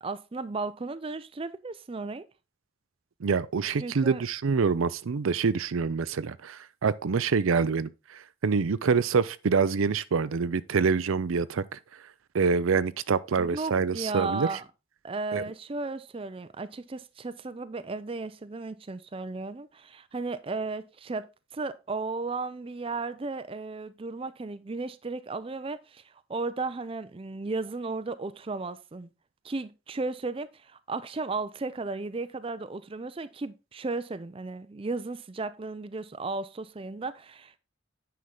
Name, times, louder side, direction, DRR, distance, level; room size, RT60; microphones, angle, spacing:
voice 1, 0.0-2.3 3.8-4.2 13.4-14.6 15.0-21.3 21.5-29.1 29.4-37.6, right 3 dB, 25° right, 0.4 m, -35 dB
voice 2, 3.2-11.8 12.3-14.5 15.3-15.4, right 5 dB, 80° right, 0.5 m, -26 dB
9.4 x 5.7 x 3.8 m
head